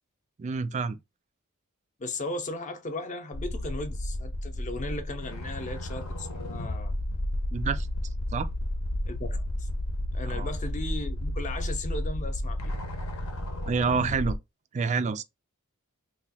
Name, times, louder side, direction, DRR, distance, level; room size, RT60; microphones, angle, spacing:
voice 1, 0.4-1.0 7.5-7.9 8.3-8.5 10.3-10.5 13.7-14.4 14.7-15.2, right 5 dB, 30° right, 0.3 m, -28 dB
voice 2, 2.0-6.9 9.1-9.7 10.1-12.7, left 2 dB, 35° left, 0.6 m, -36 dB
sound 1, 3.3-14.4, left 1 dB, 70° left, 0.8 m, -32 dB
3.0 x 2.2 x 4.1 m
head